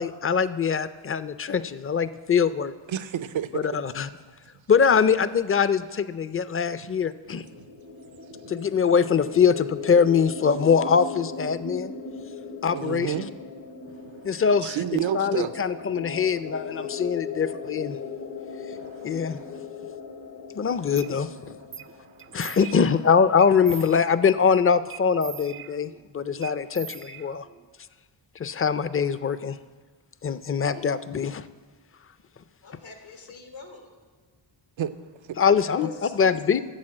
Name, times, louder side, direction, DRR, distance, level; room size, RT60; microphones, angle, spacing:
voice 1, 0.0-2.7 3.5-4.1 4.7-7.4 8.5-11.9 12.6-13.3 14.2-14.8 15.1-18.0 19.0-19.4 20.5-21.6 22.3-27.5 28.4-29.6 30.2-31.5 35.4-35.9 36.1-36.6, left 6 dB, 30° left, 14 dB, 0.4 m, -23 dB
voice 2, 2.9-3.5 6.8-6.9 7.3-7.7 8.3-8.5 12.7-13.3 14.6-15.5 15.9-16.3 16.8-17.1 18.8-19.5 21.3-21.4 22.0-22.1 34.8-34.9 35.2-35.4, right 9 dB, 90° right, 12 dB, 0.7 m, -31 dB
sound 1, 7.2-22.9, left 5 dB, 55° left, 1.0 m, -39 dB
sound 2, 21.0-21.1 21.7-21.9 22.2-23.0 23.4-24.4 24.9-26.0 26.4-27.7, right 8 dB, 30° right, 0.4 m, -42 dB
voice 3, 32.6-33.9 35.6-36.4, left 4 dB, 85° left, 3 dB, 1.8 m, -42 dB
10.5 x 7.3 x 7.6 m, 1.4 s
wide cardioid pair, 75°, 46 cm